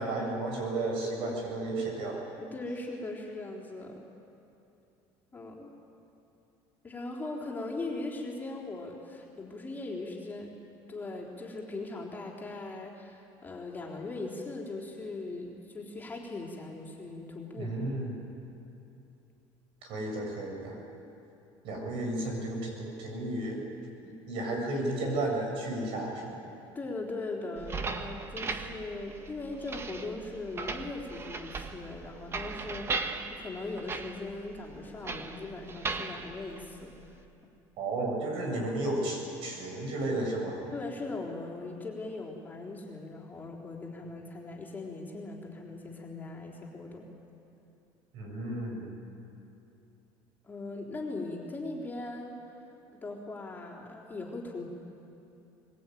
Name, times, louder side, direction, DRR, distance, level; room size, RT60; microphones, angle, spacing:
voice 1, 0.0-2.3 17.6-18.1 19.9-20.8 21.6-23.6 24.0-26.4 37.8-40.6 48.1-48.9, right 2 dB, 65° right, 1 dB, 7.6 m, -33 dB
voice 2, 2.4-4.0 5.3-5.7 6.8-10.5 10.9-17.7 26.8-36.9 40.7-47.1 50.4-52.4 53.0-54.7, left 2 dB, 20° left, -2 dB, 3.9 m, -39 dB
sound 1, 27.6-37.2, right 4 dB, 25° right, 1.5 m, -38 dB
22.5 x 21.5 x 9.4 m, 2.8 s
cardioid pair, 130°, 10 cm